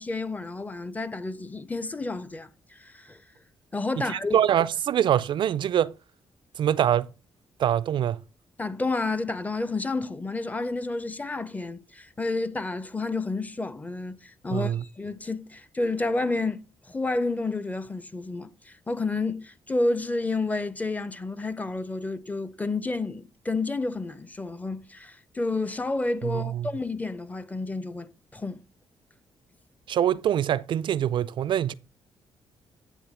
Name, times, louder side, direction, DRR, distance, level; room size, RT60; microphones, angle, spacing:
voice 1, 0.0-3.2 3.7-4.4 8.6-28.6, left 3 dB, 15° left, 0.6 m, -30 dB
voice 2, 4.1-5.9 6.6-7.1 7.6-8.2 14.5-14.8 26.2-26.7 29.9-31.7, right 10 dB, 65° right, 0.4 m, -24 dB
9.2 x 3.5 x 5.9 m
cardioid pair, 90°, 9 cm